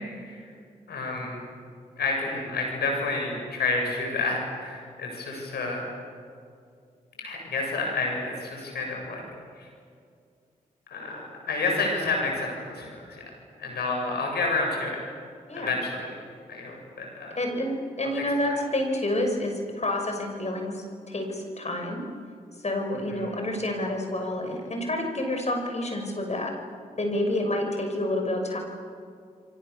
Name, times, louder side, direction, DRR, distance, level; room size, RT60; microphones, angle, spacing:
voice 1, 0.9-1.4 1.9-5.9 7.2-9.2 9.6-9.7 10.9-13.3 13.6-15.0 15.5-16.1 16.5-17.4 18.2-18.3 18.5-18.6 23.1-23.3, left 3 dB, 80° left, 1 dB, 7.7 m, -30 dB
voice 2, 17.4-22.0 22.6-26.5 27.0-28.6, left 1 dB, 40° left, 3 dB, 6.4 m, -29 dB
29.5 x 24.0 x 7.1 m, 2.3 s
supercardioid pair, 40°, 17 cm